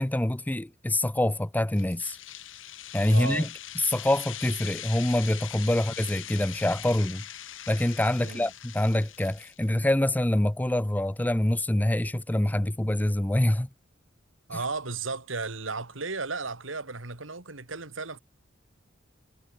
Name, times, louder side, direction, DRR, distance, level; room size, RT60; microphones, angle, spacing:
voice 1, 0.0-2.2 2.9-3.5 3.9-7.2 7.7-13.7, left 1 dB, 10° left, 0.5 m, -25 dB
sound 1, 1.8-9.6, left 12 dB, 75° left, 1.9 m, -41 dB
voice 2, 3.1-3.5 5.7-5.9 8.2-8.5 14.5-18.2, right 3 dB, 85° right, 2.7 m, -34 dB
head